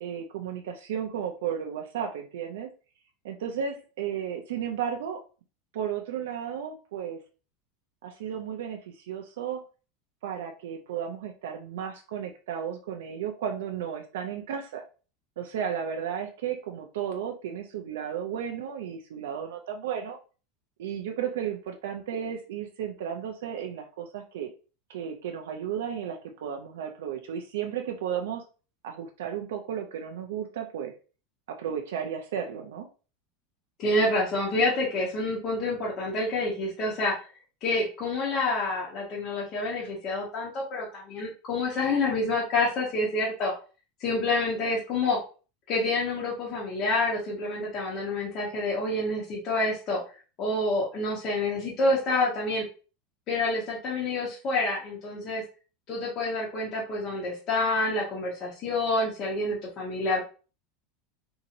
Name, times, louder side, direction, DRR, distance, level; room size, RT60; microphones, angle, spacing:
voice 1, 0.0-2.7 3.2-5.2 5.7-7.2 8.0-9.6 10.2-14.8 15.4-20.2 20.8-24.5 24.9-28.4 28.8-30.9 31.5-32.9, right 8 dB, 85° right, 4 dB, 0.4 m, -34 dB
voice 2, 33.8-37.1 37.6-43.5 44.0-45.2 45.7-50.0 50.4-52.6 53.3-55.4 55.9-60.2, left 2 dB, 45° left, -5 dB, 0.9 m, -28 dB
2.9 x 2.7 x 2.5 m, 0.35 s
supercardioid pair, 130°, 0 cm